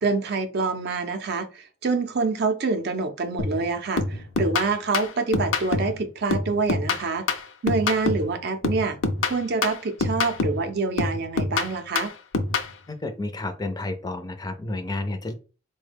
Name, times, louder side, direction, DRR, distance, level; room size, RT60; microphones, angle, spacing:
voice 1, 0.0-7.3 7.6-12.1, right 4 dB, 60° right, 0.5 m, -26 dB
sound 1, 3.4-3.7 4.0-6.0 6.3-8.3 8.6-10.7 11.0-12.7, left 3 dB, 80° left, 0.5 m, -26 dB
voice 2, 12.9-15.3, left 2 dB, 20° left, 0.4 m, -31 dB
4.1 x 2.2 x 3.3 m
head